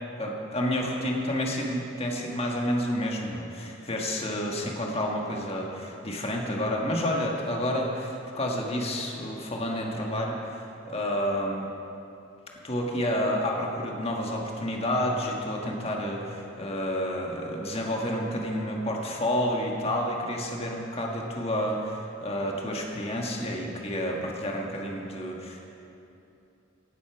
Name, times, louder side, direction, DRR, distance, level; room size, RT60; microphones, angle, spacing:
voice 1, 0.2-11.7 12.6-25.6, equal, 30° left, 0 dB, 1.6 m, -30 dB
16.5 x 8.4 x 5.9 m, 2.8 s
head